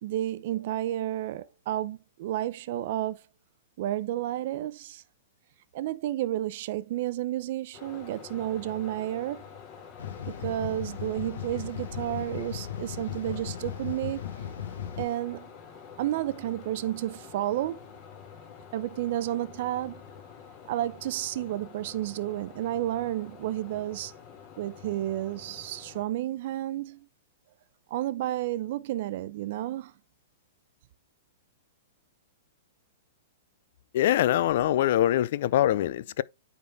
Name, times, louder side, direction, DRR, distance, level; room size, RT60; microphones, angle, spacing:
voice 1, 0.0-3.2 3.8-5.0 5.7-9.4 10.2-14.2 15.0-15.5 16.0-17.8 18.7-20.0 20.7-24.1 24.6-27.1 27.9-29.9, right 13 dB, 55° right, 0.6 m, -31 dB
sound 1, 7.7-26.0, left 7 dB, 35° left, 2.1 m, -48 dB
sound 2, 10.0-15.1, left 9 dB, 75° left, 1.5 m, -37 dB
voice 2, 33.9-36.2, left 12 dB, 60° left, 0.4 m, -23 dB
9.5 x 3.9 x 3.5 m
hypercardioid pair, 145°, 0 cm